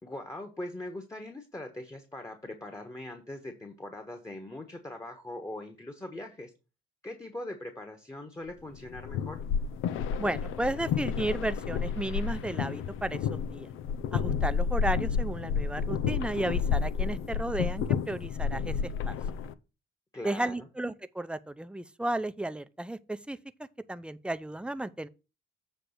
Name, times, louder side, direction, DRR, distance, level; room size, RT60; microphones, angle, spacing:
voice 1, 0.0-6.5 7.0-9.4 20.1-20.7, left 1 dB, 15° left, 1.3 m, -41 dB
sound 1, 8.7-19.5, left 7 dB, 90° left, 0.6 m, -31 dB
voice 2, 10.2-13.7 14.1-18.7 19.1-19.2 20.2-23.4 23.9-25.1, right 1 dB, 5° right, 0.6 m, -33 dB
7.8 x 3.4 x 6.5 m
cardioid pair, 90°, 20 cm